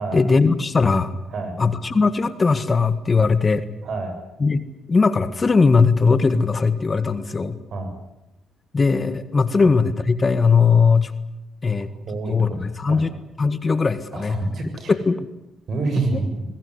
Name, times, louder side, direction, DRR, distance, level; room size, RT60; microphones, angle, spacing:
voice 1, 0.1-1.1 1.6-3.6 4.4-4.6 4.9-7.6 8.7-11.1 11.6-11.9 12.3-13.1 13.4-14.4 15.0-15.2, left 4 dB, 30° left, 12 dB, 1.7 m, -19 dB
voice 2, 3.8-4.2 7.7-7.9 9.6-9.7 12.1-13.1 14.1-15.0 15.7-16.3, right 3 dB, 60° right, 7 dB, 7.7 m, -27 dB
23.0 x 20.0 x 9.8 m, 0.92 s
cardioid pair, 90°, 0 cm